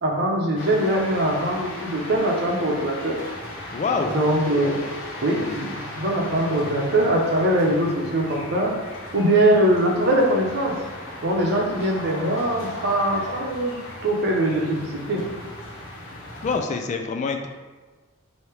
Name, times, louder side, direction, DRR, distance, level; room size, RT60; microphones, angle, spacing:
voice 1, 0.0-3.2 4.1-4.8 5.2-8.7 9.1-10.7 11.2-13.7 14.0-15.2, right 1 dB, 55° right, -1 dB, 0.7 m, -22 dB
sound 1, 0.5-16.6, left 1 dB, 85° left, 1.0 m, -37 dB
voice 2, 3.7-4.1 16.4-17.5, left 4 dB, 35° left, 5 dB, 0.3 m, -25 dB
3.2 x 2.7 x 4.6 m, 1.3 s
head